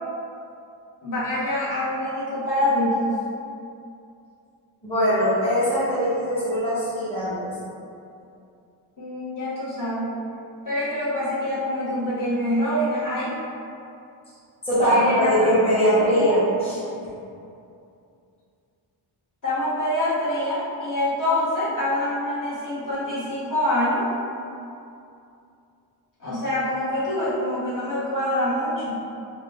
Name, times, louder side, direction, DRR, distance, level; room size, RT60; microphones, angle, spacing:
voice 1, 1.0-3.2 9.0-10.1 10.6-13.3 14.9-15.5 16.0-16.4 19.4-24.1 26.2-28.9, left 1 dB, 40° left, -11 dB, 1.3 m, -25 dB
voice 2, 4.8-7.5 14.6-16.8, equal, 10° left, -11 dB, 1.3 m, -21 dB
4.0 x 2.2 x 2.8 m, 2.6 s
cardioid pair, 90°, 50 cm